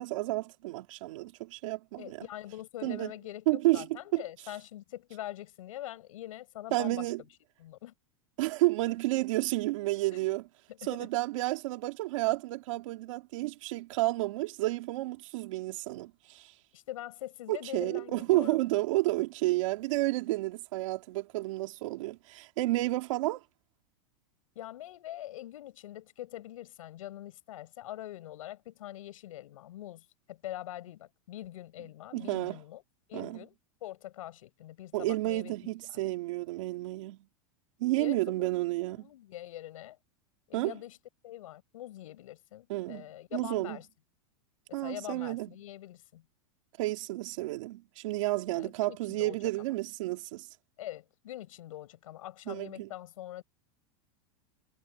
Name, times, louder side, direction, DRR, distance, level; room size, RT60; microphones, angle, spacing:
voice 1, 0.0-2.3 2.8-3.1 3.5-4.2 6.7-7.2 8.4-10.5 10.9-16.5 17.5-23.4 32.1-32.6 33.1-33.4 34.9-37.2 37.8-39.1 40.5-40.7 42.7-43.0 43.3-43.8 44.7-45.5 46.8-50.5 52.5-52.9, right 19 dB, 70° right, 3.2 m, -31 dB
voice 2, 2.0-7.1 7.6-7.9 10.7-11.1 16.7-18.6 24.6-32.8 33.1-33.5 33.8-36.1 38.0-38.5 38.9-40.0 40.5-41.0 41.2-43.9 44.7-46.2 48.5-49.7 50.8-53.4, left 14 dB, 85° left, 7.2 m, -44 dB
supercardioid pair, 135°, 17 cm